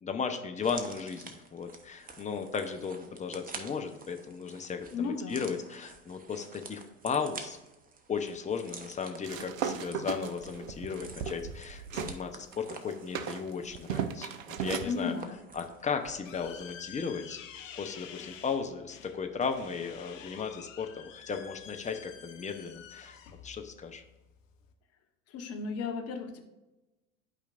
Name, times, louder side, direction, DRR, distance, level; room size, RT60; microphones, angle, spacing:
voice 1, 0.0-7.6 8.1-14.3 14.6-15.1 15.5-17.4 17.8-23.2 23.4-24.0, left 6 dB, 15° left, 5 dB, 0.8 m, -35 dB
sound 1, 0.6-16.3 16.6-16.7, right 4 dB, 20° right, 1.0 m, -49 dB
voice 2, 4.9-5.5 14.8-15.4 25.3-26.4, left 5 dB, 35° left, 4 dB, 1.2 m, -34 dB
sound 2, 9.2-12.2 12.5-14.9, right 7 dB, 75° right, 0.7 m, -36 dB
sound 3, 15.6-24.7, left 8 dB, 65° left, 0.9 m, -49 dB
11.0 x 5.0 x 2.5 m, 1.0 s
figure-of-eight pair, 75°, 41 cm